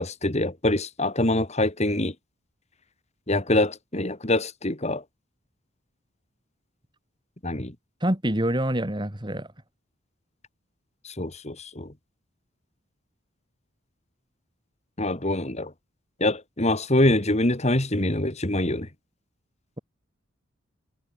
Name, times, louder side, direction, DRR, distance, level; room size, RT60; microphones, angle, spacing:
voice 1, 0.0-2.1 3.3-5.0 7.4-7.7 11.0-11.9 15.0-15.7 16.2-18.9, left 1 dB, 30° left, 2.5 m, -24 dB
voice 2, 8.0-9.5, right 1 dB, 20° right, 3.0 m, -26 dB
head